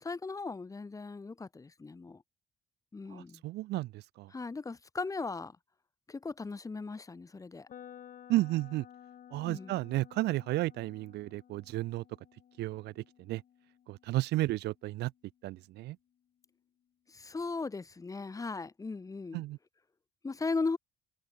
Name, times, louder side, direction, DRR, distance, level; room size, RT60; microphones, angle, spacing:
voice 1, 0.0-2.2 2.9-3.4 4.3-5.6 6.1-7.7 9.5-9.8 17.1-19.4 20.2-20.8, left 4 dB, 20° left, 1.6 m, -37 dB
voice 2, 3.1-4.3 8.3-8.8 9.3-12.0 12.6-13.4 13.9-15.1 15.4-16.0 19.3-19.6, right 17 dB, 80° right, 2.6 m, -33 dB
sound 1, 7.7-15.6, left 9 dB, 55° left, 7.2 m, -55 dB
cardioid pair, 110°, 17 cm